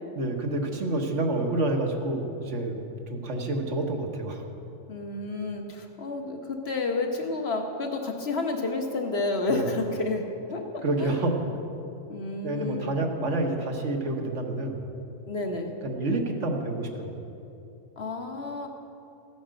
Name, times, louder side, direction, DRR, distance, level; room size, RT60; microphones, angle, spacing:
voice 1, 0.1-2.8 3.1-4.4 9.5-9.7 10.8-11.4 12.4-14.8 15.8-17.1, right 2 dB, 70° right, 2 dB, 1.6 m, -28 dB
voice 2, 4.9-10.2 10.5-11.2 12.1-13.0 15.3-15.7 18.0-18.7, left 3 dB, 55° left, 3 dB, 1.6 m, -30 dB
15.0 x 9.4 x 6.4 m, 2.8 s
omnidirectional pair, 1.3 m